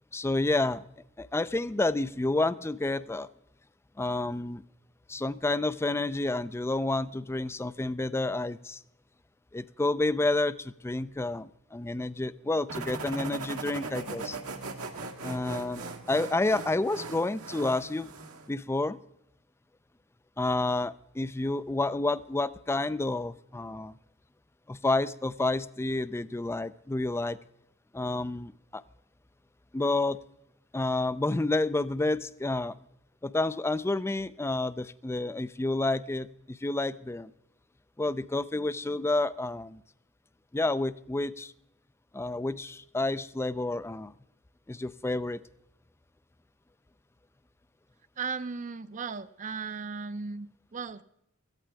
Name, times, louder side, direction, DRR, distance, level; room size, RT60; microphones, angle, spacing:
voice 1, 0.1-0.8 1.2-3.3 4.0-4.6 5.1-8.8 9.5-14.4 15.2-18.1 18.5-19.0 20.4-23.9 24.7-27.4 27.9-28.8 29.7-30.2 30.7-32.8 33.2-37.3 38.0-39.8 40.5-41.5 42.1-44.1 44.7-45.4, left 2 dB, 10° left, 16 dB, 0.4 m, -29 dB
sound 1, 12.7-18.5, right 3 dB, 80° right, 1.7 m, -39 dB
voice 2, 48.2-51.0, right 5 dB, 35° right, 13 dB, 0.6 m, -36 dB
17.5 x 14.0 x 3.4 m, 0.79 s
head